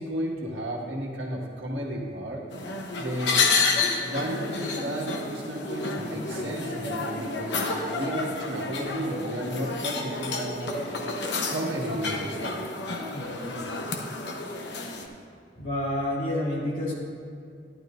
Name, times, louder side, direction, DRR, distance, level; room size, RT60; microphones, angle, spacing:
voice 1, 0.0-2.4 3.0-3.5 4.0-7.6 7.9-10.8 11.4-12.4, right 1 dB, 85° right, -2 dB, 1.7 m, -33 dB
sound 1, 2.5-15.1, left 3 dB, 70° left, 0.9 m, -30 dB
voice 2, 13.1-13.7 15.6-16.9, left 1 dB, 45° left, -7 dB, 2.7 m, -29 dB
12.0 x 11.5 x 2.6 m, 2.4 s
head